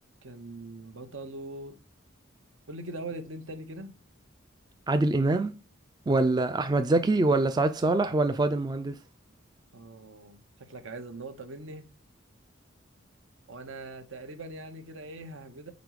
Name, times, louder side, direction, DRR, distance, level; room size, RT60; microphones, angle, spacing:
voice 1, 0.2-1.8 2.7-3.9 9.7-11.9 13.5-15.7, right 2 dB, 70° right, 0.8 m, -41 dB
voice 2, 4.9-5.5 6.1-9.0, right 2 dB, 20° right, 0.3 m, -24 dB
5.2 x 4.0 x 4.7 m
head